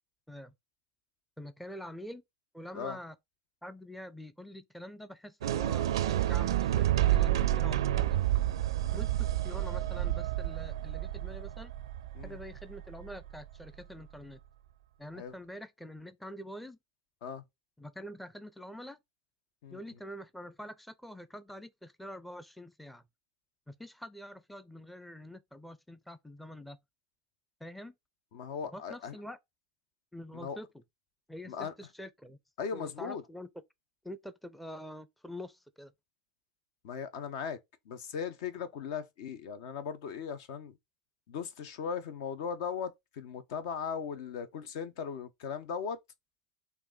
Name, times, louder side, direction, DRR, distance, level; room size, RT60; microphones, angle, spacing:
voice 1, 1.4-2.2 2.5-3.1 3.6-8.1 8.9-11.7 12.2-14.4 15.0-16.8 17.8-19.0 19.7-23.0 23.7-26.8 27.6-27.9 28.7-29.4 30.1-30.7 31.3-32.4 32.7-33.5 34.0-35.9, equal, 5° left, 0.5 m, -46 dB
sound 1, 5.4-13.5, right 13 dB, 70° right, 0.4 m, -30 dB
voice 2, 19.6-20.0 28.3-29.2 30.3-30.6 31.5-31.7 32.6-33.2 36.8-37.6 37.9-40.7 41.3-46.0, left 6 dB, 60° left, 0.8 m, -38 dB
4.6 x 2.7 x 3.8 m
figure-of-eight pair, 85°, 3 cm